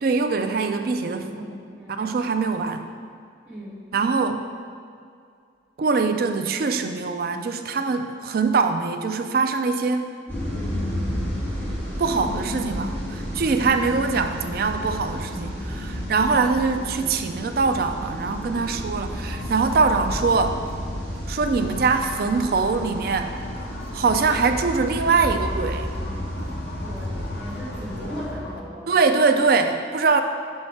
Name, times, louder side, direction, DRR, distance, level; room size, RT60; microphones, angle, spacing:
voice 1, 0.0-1.4 2.0-2.9 3.9-4.4 5.8-10.1 12.0-20.6 21.3-23.3 23.9-25.9 28.9-30.2, right 4 dB, 55° right, 7 dB, 0.4 m, -23 dB
voice 2, 1.2-2.1 3.5-3.9 26.8-28.9, equal, 10° right, -8 dB, 1.6 m, -38 dB
sound 1, 10.3-28.3, equal, 10° left, 1.8 m, -32 dB
sound 2, 18.3-28.6, left 1 dB, 55° left, 0.7 m, -40 dB
6.4 x 5.6 x 4.4 m, 2.3 s
head